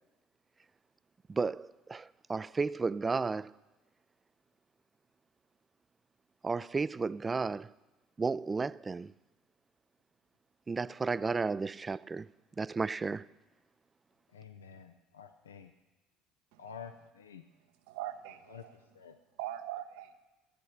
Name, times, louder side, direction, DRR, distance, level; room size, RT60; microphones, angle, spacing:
voice 1, 1.3-3.5 6.4-7.7 8.2-9.1 10.7-12.3 12.6-13.3, right 4 dB, 25° right, 0.3 m, -33 dB
voice 2, 14.3-15.7 16.6-17.4 18.5-18.6 18.9-19.2, left 7 dB, 90° left, 0.5 m, -49 dB
voice 3, 17.9-18.8 19.4-20.2, right 13 dB, 70° right, 0.7 m, -41 dB
13.5 x 8.6 x 5.9 m
hypercardioid pair, 65°, 0 cm